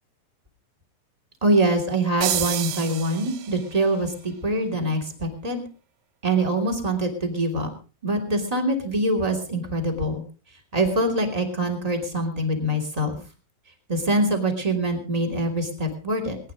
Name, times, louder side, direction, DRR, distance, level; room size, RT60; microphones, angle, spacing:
voice 1, 1.4-5.6 6.2-7.7 8.0-10.2 10.7-13.2 13.9-16.4, right 1 dB, 15° right, 3 dB, 1.5 m, -24 dB
sound 1, 2.2-3.8, right 11 dB, 70° right, 3.3 m, -29 dB
20.5 x 11.0 x 5.0 m, 0.36 s
omnidirectional pair, 5.8 m